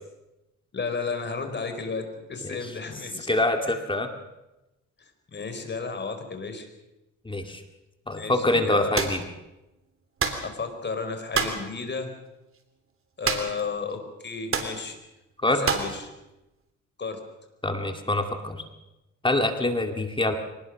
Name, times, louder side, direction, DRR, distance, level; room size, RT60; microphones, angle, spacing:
voice 1, 0.7-3.3 3.6-3.8 5.0-6.7 8.1-8.9 10.4-12.1 13.2-15.0 15.5-16.1 17.0-17.2, left 4 dB, 35° left, 7 dB, 4.4 m, -33 dB
voice 2, 3.3-4.1 7.3-7.6 8.1-9.2 15.4-15.7 17.6-18.6 19.2-20.4, left 2 dB, 15° left, 5 dB, 2.2 m, -25 dB
sound 1, 9.0-9.2 10.2-10.5 11.3-11.6 13.2-13.7 13.9-14.0 14.5-14.8 15.7-16.0, right 5 dB, 45° right, 3.3 m, -26 dB
24.0 x 19.5 x 6.4 m, 0.97 s
cardioid pair, 90°, 30 cm